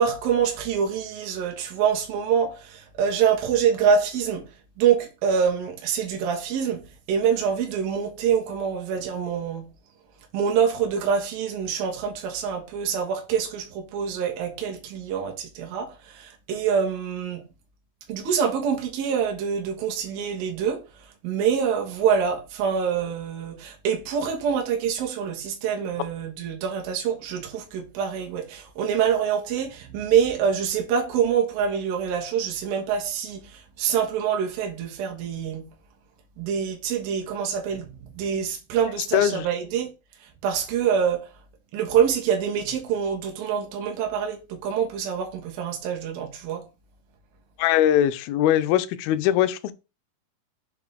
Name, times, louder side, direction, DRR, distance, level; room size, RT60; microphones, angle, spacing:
voice 1, 0.0-4.5 4.8-9.7 10.3-17.4 18.1-35.7 36.4-39.9 40.2-41.3 41.7-46.7, right 7 dB, 65° right, 3.0 m, -25 dB
voice 2, 39.1-39.5 47.6-49.7, left 11 dB, 80° left, 2.3 m, -21 dB
6.9 x 5.2 x 3.4 m
omnidirectional pair, 5.0 m